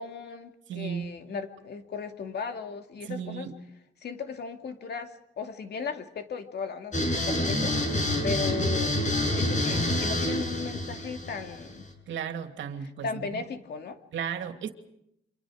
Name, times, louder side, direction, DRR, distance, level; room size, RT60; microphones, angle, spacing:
voice 1, 0.0-3.5 4.0-7.8 8.2-8.9 9.3-11.9 12.8-14.0, left 5 dB, 55° left, 5 dB, 2.6 m, -36 dB
voice 2, 0.7-1.1 3.1-3.5 12.1-13.4 14.1-14.7, right 8 dB, 70° right, 6 dB, 2.8 m, -34 dB
sound 1, 6.9-11.9, left 1 dB, 40° left, 7.3 m, -27 dB
27.5 x 26.5 x 5.1 m, 0.79 s
cardioid pair, 90°, 20 cm